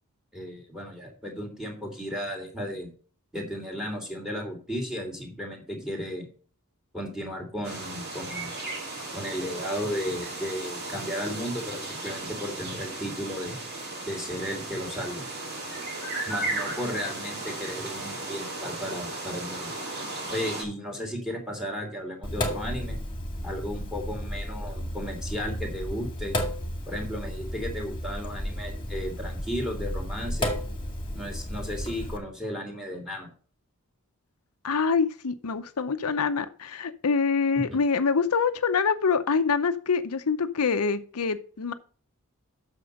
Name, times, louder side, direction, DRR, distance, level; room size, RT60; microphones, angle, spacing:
voice 1, 0.3-2.9 3.3-6.3 6.9-8.5 9.1-13.6 14.0-15.2 16.3-19.8 20.3-23.0 23.4-26.4 26.9-30.5 31.1-33.3 37.7-37.8, equal, ahead, 1 dB, 3.0 m, -34 dB
sound 1, 7.6-20.6, right 2 dB, 50° right, 3.1 m, -35 dB
Sink (filling or washing), 22.2-32.2, equal, 25° left, 2.1 m, -33 dB
voice 2, 34.6-41.7, left 5 dB, 80° left, 9 dB, 0.7 m, -25 dB
8.6 x 6.7 x 5.3 m, 0.40 s
head